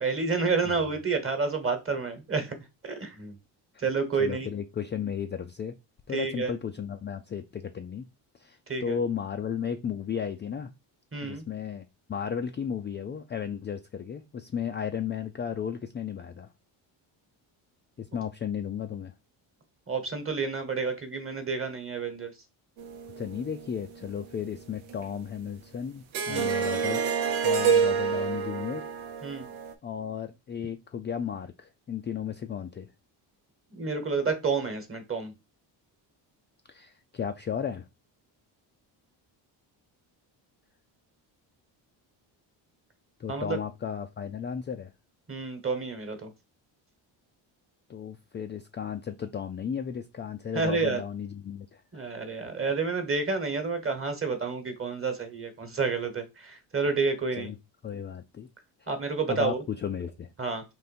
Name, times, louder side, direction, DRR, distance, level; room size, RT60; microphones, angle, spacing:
voice 1, 0.0-2.6 2.8-3.4 3.8-4.5 6.1-6.5 8.7-9.0 11.1-11.4 19.9-22.3 26.3-26.5 29.2-29.5 33.7-35.3 43.3-43.6 45.3-46.3 50.5-51.0 51.9-57.5 58.9-59.6 60.4-60.6, right 4 dB, 25° right, 1.3 m, -29 dB
voice 2, 4.2-5.8 6.1-8.1 8.3-10.7 11.2-16.5 18.0-19.1 23.2-27.0 27.4-28.9 29.8-32.9 36.7-37.9 43.2-44.9 47.9-52.2 57.4-57.6 57.8-58.5 59.3-60.3, left 8 dB, 25° left, 0.3 m, -34 dB
sound 1, 22.8-24.6 24.9-25.1 26.1-29.7, right 6 dB, 80° right, 0.9 m, -28 dB
3.7 x 2.6 x 4.2 m
supercardioid pair, 75°, 48 cm